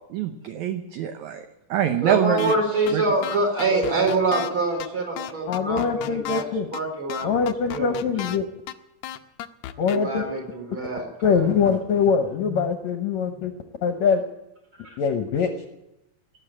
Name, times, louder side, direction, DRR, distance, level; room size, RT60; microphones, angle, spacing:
voice 1, 0.1-1.4 1.7-2.5 2.9-3.0, right 10 dB, 70° right, 7 dB, 1.9 m, -25 dB
voice 2, 2.0-8.3 9.8-11.6 14.8-14.9, right 3 dB, 35° right, 0 dB, 5.0 m, -26 dB
sound 1, 2.4-2.6 2.9-3.0 3.2-4.5 4.8-4.9 5.2-6.4 6.7-6.8 7.1-8.4 8.7-8.8 9.0-10.0, left 11 dB, 85° left, 1.6 m, -33 dB
voice 3, 5.5-6.7 7.2-8.4 9.8-10.2 11.2-13.5 13.8-14.2 15.0-15.5, left 6 dB, 70° left, 6 dB, 1.8 m, -23 dB
18.5 x 7.9 x 9.9 m, 0.92 s
omnidirectional pair, 4.1 m